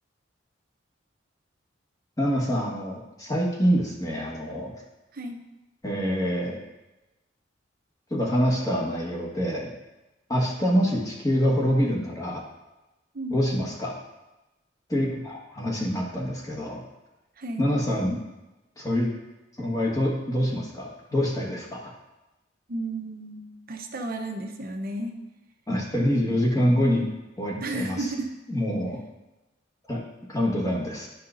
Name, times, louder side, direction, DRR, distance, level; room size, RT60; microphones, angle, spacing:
voice 1, 2.2-4.7 5.8-6.6 8.1-9.7 10.3-12.4 13.3-14.0 14.9-16.8 17.6-18.2 18.8-19.1 19.6-21.9 25.7-27.1 27.4-28.1 28.5-29.0 29.9-30.0 30.3-31.1, equal, 20° left, -2 dB, 1.4 m, -25 dB
voice 2, 17.4-17.7 22.7-25.1 26.1-26.8 27.6-28.3, right 2 dB, 50° right, 4 dB, 0.8 m, -33 dB
12.0 x 5.6 x 2.6 m, 1.0 s
head